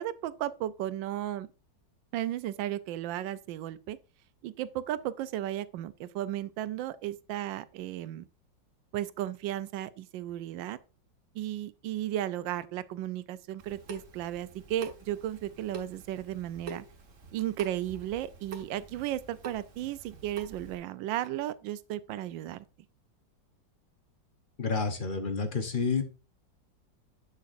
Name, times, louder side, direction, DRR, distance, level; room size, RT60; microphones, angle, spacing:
voice 1, 0.0-1.5 2.1-4.0 4.4-8.3 8.9-10.8 11.3-16.8 17.3-22.6, right 12 dB, 85° right, 1.3 m, -34 dB
Water tap faucet / Sink (filling or washing) / Drip, 13.6-20.8, right 4 dB, 45° right, 1.6 m, -46 dB
voice 2, 24.6-26.0, left 5 dB, 35° left, 0.9 m, -29 dB
8.1 x 6.5 x 2.5 m
omnidirectional pair, 2.0 m